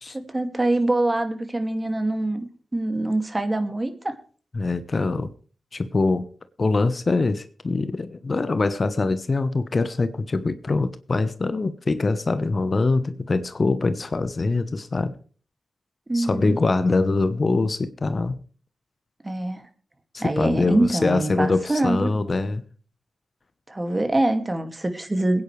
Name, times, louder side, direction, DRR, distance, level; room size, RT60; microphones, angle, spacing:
voice 1, 0.1-2.5 2.7-4.2 16.1-16.6 19.2-19.6 20.2-22.1 23.7-25.4, right 2 dB, 25° right, 2.3 m, -24 dB
voice 2, 4.5-5.3 5.7-6.3 6.6-15.1 16.1-18.3 20.1-22.6, left 3 dB, 50° left, 1.1 m, -23 dB
22.0 x 9.7 x 3.3 m
supercardioid pair, 40°, 0 cm